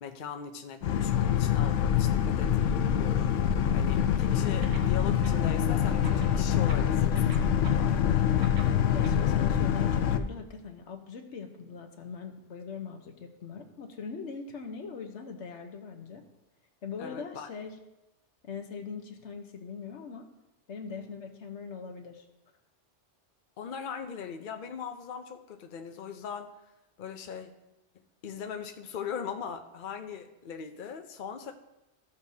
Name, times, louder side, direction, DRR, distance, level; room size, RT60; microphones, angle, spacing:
voice 1, 0.0-7.9 17.0-17.5 23.6-26.5 27.0-27.5 28.2-31.5, left 7 dB, 50° left, 6 dB, 0.7 m, -40 dB
Boat Water vehicle, 0.8-10.2, left 9 dB, 90° left, 0.9 m, -25 dB
sound 1, 4.6-5.6 5.9-9.2, right 4 dB, 65° right, 1.4 m, -45 dB
voice 2, 8.9-16.2 16.8-17.8 18.4-20.3 20.7-22.3, left 5 dB, 70° left, 6 dB, 1.2 m, -41 dB
14.0 x 7.0 x 2.7 m, 0.93 s
omnidirectional pair, 1.2 m